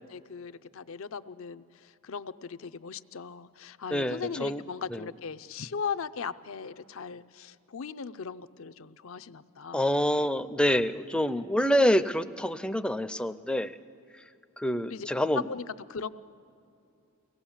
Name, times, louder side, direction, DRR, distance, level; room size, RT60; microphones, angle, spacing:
voice 1, 0.1-9.8 14.9-15.1 15.3-16.1, left 5 dB, 65° left, 12 dB, 0.6 m, -38 dB
voice 2, 3.9-4.6 4.9-5.1 9.7-13.7 14.6-15.4, equal, 5° left, 11 dB, 0.4 m, -26 dB
24.0 x 17.5 x 7.2 m, 2.7 s
head